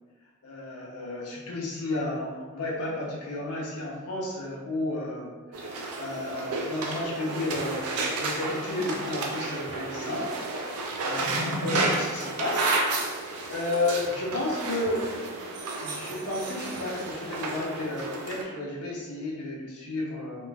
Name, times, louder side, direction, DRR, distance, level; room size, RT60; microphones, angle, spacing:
voice 1, 0.4-10.3 10.6-15.1 15.8-20.5, left 2 dB, 85° left, -3 dB, 0.7 m, -32 dB
sound 1, 5.5-18.4, right 3 dB, 85° right, 0.4 m, -32 dB
3.0 x 2.3 x 2.2 m, 1.4 s
head